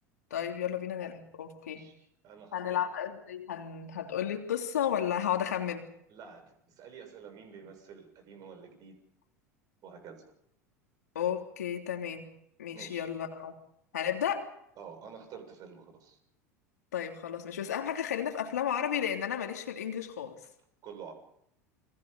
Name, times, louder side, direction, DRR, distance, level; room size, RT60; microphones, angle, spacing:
voice 1, 0.3-1.9 2.5-5.9 11.1-12.3 12.6-13.5 13.9-14.5 16.9-20.4, left 9 dB, 75° left, 4 dB, 3.4 m, -33 dB
voice 2, 1.7-2.8 6.1-9.0 9.8-10.2 12.7-13.1 14.8-16.2 20.8-21.1, right 6 dB, 45° right, 6 dB, 7.0 m, -49 dB
29.5 x 23.0 x 5.4 m, 0.74 s
figure-of-eight pair, 80°, 9 cm